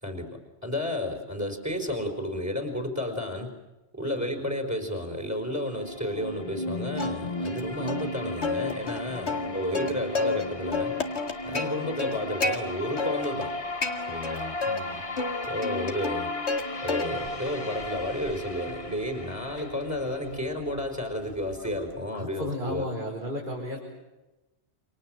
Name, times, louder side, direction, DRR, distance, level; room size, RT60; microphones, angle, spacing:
voice 1, 0.6-3.5 3.9-10.9 11.4-13.5 14.1-14.5 15.5-16.3 16.8-22.8, left 1 dB, 15° right, 5 dB, 4.6 m, -32 dB
sound 1, 5.4-21.4, left 1 dB, 30° left, 1.5 m, -36 dB
Plucked string instrument, 7.0-7.6 7.9-8.0 8.4-10.4 10.7-12.6 13.0-13.5 13.8-14.8 15.2-16.6 16.9-17.4 17.8-22.0, left 4 dB, 75° left, 2.4 m, -31 dB
voice 2, 9.2-10.0 14.6-15.1 22.1-23.8, equal, 45° right, -2 dB, 5.7 m, -35 dB
29.0 x 26.5 x 7.7 m, 1.0 s
omnidirectional pair, 1.1 m